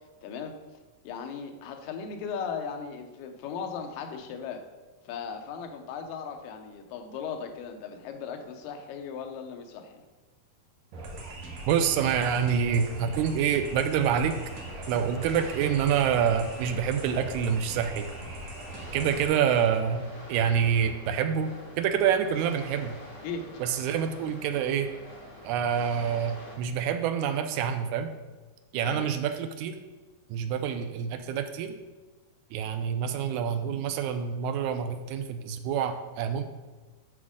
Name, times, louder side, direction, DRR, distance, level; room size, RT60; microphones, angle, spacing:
voice 1, 0.2-0.6 1.0-4.7 5.1-10.0 23.2-23.5 28.8-29.1, left 6 dB, 80° left, 5 dB, 2.4 m, -37 dB
sound 1, 10.9-19.3, right 2 dB, 65° right, 1.9 m, -41 dB
voice 2, 11.7-14.4 14.9-18.0 18.9-21.5 21.8-23.0 23.6-24.9 25.4-28.1 28.7-29.8 30.3-31.8 32.5-36.4, right 8 dB, 85° right, 7 dB, 1.7 m, -27 dB
sound 2, 14.3-26.5, left 1 dB, 35° left, 2.9 m, -46 dB
8.5 x 6.0 x 3.6 m, 1.2 s
omnidirectional pair, 3.9 m